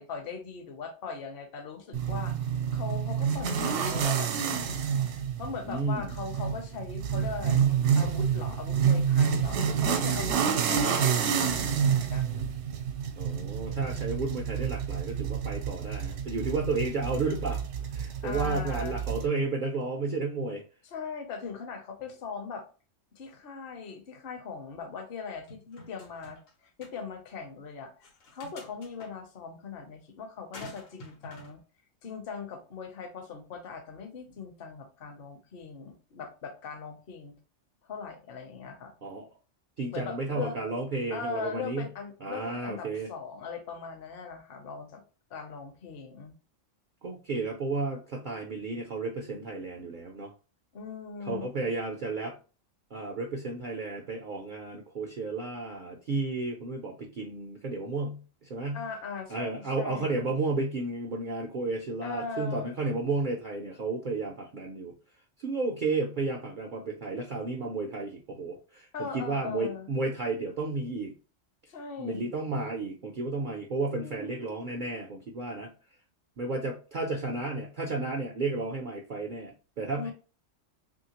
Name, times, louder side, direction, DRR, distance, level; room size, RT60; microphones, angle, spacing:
voice 1, 0.0-2.3 2.7-4.8 5.4-12.5 13.3-14.1 18.2-19.0 20.9-22.7 23.2-26.4 26.8-27.9 28.3-31.6 32.0-37.4 37.8-38.9 39.9-40.6 41.1-45.0 45.3-46.4 50.7-51.5 58.7-60.2 62.0-62.7 68.9-69.9 71.7-72.3 73.9-74.4 80.0-80.1, left 5 dB, 55° left, 5 dB, 0.8 m, -40 dB
sound 1, 1.9-19.3, right 7 dB, 80° right, 0.9 m, -28 dB
voice 2, 5.6-6.1 13.2-17.6 17.9-20.6 39.0-39.3 39.8-41.9 42.2-43.1 47.0-50.3 51.3-52.4 52.9-58.8 59.3-64.9 65.4-71.1 72.0-75.7 76.4-80.1, right 3 dB, 60° right, 1 dB, 0.5 m, -32 dB
sound 2, 25.5-26.5 26.8-26.9 28.0-29.1 30.5-31.5, left 2 dB, 80° left, 1.2 m, -47 dB
3.1 x 2.7 x 2.8 m, 0.35 s
omnidirectional pair, 1.3 m